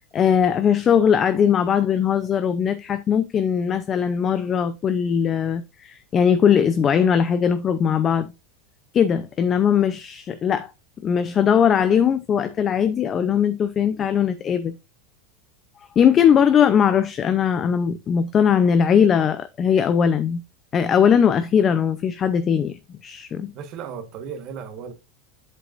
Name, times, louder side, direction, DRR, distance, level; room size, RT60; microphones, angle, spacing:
voice 1, 0.1-8.3 8.9-10.7 11.0-14.8 16.0-20.4 20.7-23.5, left 8 dB, 25° left, 0.5 m, -20 dB
voice 2, 23.5-24.9, right 7 dB, 40° right, 1.3 m, -35 dB
8.0 x 7.6 x 2.5 m
supercardioid pair, 150°, 0 cm